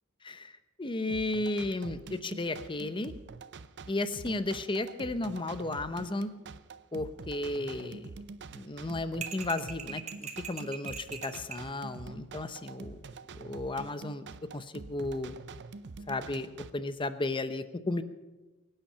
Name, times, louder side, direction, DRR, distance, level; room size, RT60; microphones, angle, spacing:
voice 1, 0.2-3.1 3.9-6.3 6.9-8.1 8.5-13.0 13.3-14.3 14.5-15.4 16.1-18.0, left 2 dB, 25° left, 12 dB, 0.7 m, -34 dB
sound 1, 1.1-16.7, right 4 dB, 55° right, 0.6 m, -46 dB
sound 2, 9.2-11.7, right 7 dB, 35° right, 1.1 m, -41 dB
23.5 x 9.0 x 5.6 m, 1.2 s
head